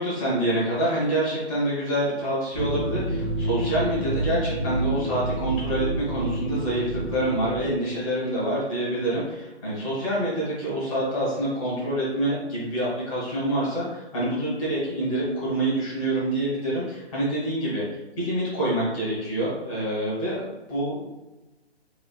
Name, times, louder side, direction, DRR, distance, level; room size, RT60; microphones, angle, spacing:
voice 1, 0.0-17.8 18.2-21.1, right 1 dB, 30° left, -7 dB, 1.1 m, -26 dB
sound 1, 2.5-7.7, right 1 dB, 25° right, 0.8 m, -29 dB
3.1 x 2.4 x 2.2 m, 1.1 s
figure-of-eight pair, 140°, 34 cm